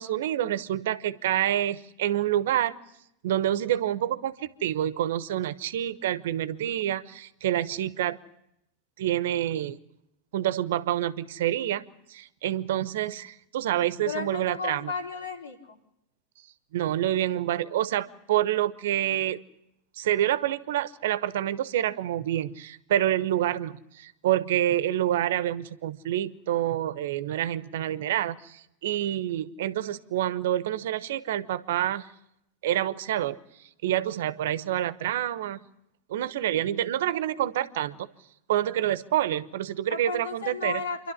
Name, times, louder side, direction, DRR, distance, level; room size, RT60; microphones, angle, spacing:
voice 1, 0.0-2.7 3.2-8.2 9.0-9.8 10.3-11.8 12.1-14.9 16.7-19.4 20.0-32.1 32.6-33.4 33.8-35.6 36.1-38.1 38.5-40.8, right 12 dB, 70° right, 16 dB, 1.0 m, -27 dB
voice 2, 14.0-15.8 39.9-41.1, left 5 dB, 90° left, 1 dB, 3.9 m, -34 dB
27.5 x 12.0 x 9.9 m, 0.81 s
hypercardioid pair, 100°, 0 cm